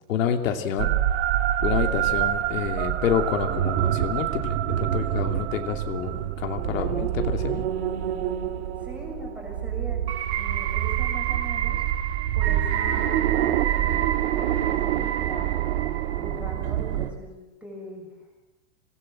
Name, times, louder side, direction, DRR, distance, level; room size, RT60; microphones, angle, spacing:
voice 1, 0.1-0.9 1.6-7.7, left 8 dB, 80° left, 4 dB, 2.8 m, -28 dB
sound 1, 0.8-17.1, right 11 dB, 55° right, 2.0 m, -26 dB
voice 2, 8.8-13.3 13.7-18.3, equal, 5° right, -1 dB, 6.9 m, -41 dB
26.5 x 19.0 x 7.7 m, 1.1 s
supercardioid pair, 170°, 39 cm